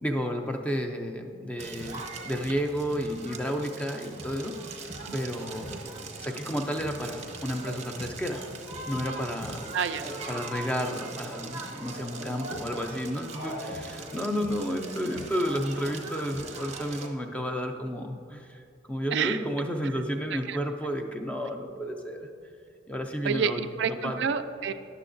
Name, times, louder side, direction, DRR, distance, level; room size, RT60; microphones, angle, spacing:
voice 1, 0.0-4.9 5.1-5.7 6.2-8.4 8.9-9.7 10.3-18.6 18.9-22.3 22.9-23.6 24.0-24.2, equal, 5° left, 4 dB, 0.4 m, -31 dB
Crackle, 1.6-17.1, right 2 dB, 35° right, 0.7 m, -40 dB
voice 2, 9.7-10.0 19.1-19.4 20.5-20.6 23.2-24.7, right 7 dB, 60° right, 10 dB, 0.3 m, -28 dB
sound 1, 13.2-14.7, left 1 dB, 60° left, 1.1 m, -42 dB
10.5 x 6.8 x 2.5 m, 2.5 s
head